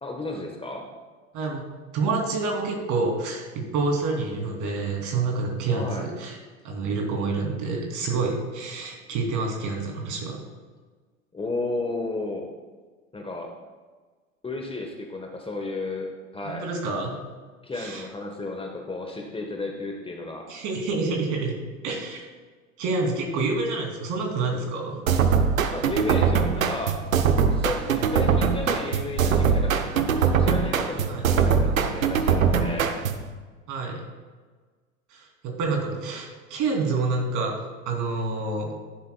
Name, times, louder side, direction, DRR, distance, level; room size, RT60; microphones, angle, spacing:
voice 1, 0.0-0.9 5.7-6.1 11.3-12.5 13.1-13.5 14.4-16.7 17.6-20.5 25.7-27.0 27.5-32.9, left 2 dB, 15° left, 2 dB, 1.3 m, -33 dB
voice 2, 1.3-1.6 1.9-6.4 6.6-10.4 16.4-17.1 17.7-18.0 20.5-22.2 22.8-25.0 31.0-31.2 33.7-34.0 35.1-37.6 37.8-38.7, right 3 dB, 45° right, 1 dB, 3.0 m, -28 dB
sound 1, 25.1-33.3, right 6 dB, 80° right, 0.8 m, -22 dB
14.0 x 11.0 x 2.3 m, 1.4 s
figure-of-eight pair, 80°, 40 cm